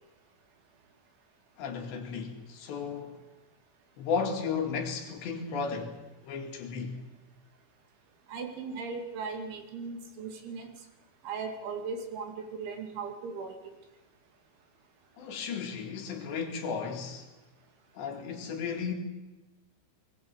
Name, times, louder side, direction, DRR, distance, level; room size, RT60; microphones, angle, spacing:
voice 1, 1.6-3.2 4.0-6.0 6.2-7.0 15.2-17.3 18.0-18.9, left 5 dB, 65° left, 4.3 m, -34 dB
voice 2, 8.3-10.7 11.2-13.6, right 5 dB, 70° right, 4.9 m, -38 dB
21.0 x 20.5 x 8.2 m
omnidirectional pair, 5.6 m